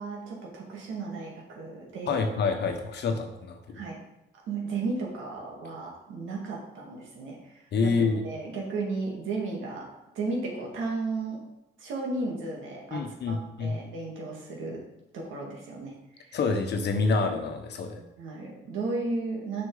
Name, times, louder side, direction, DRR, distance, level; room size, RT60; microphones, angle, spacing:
voice 1, 0.0-2.2 3.7-4.0 4.3-11.4 11.8-14.8 15.1-16.4 17.8-19.7, right 3 dB, 80° right, -1 dB, 2.0 m, -34 dB
voice 2, 2.1-3.8 7.7-8.2 12.9-13.8 16.3-18.0, left 4 dB, 60° left, 5 dB, 1.1 m, -27 dB
6.3 x 6.1 x 3.9 m, 0.89 s
cardioid pair, 90°, 20 cm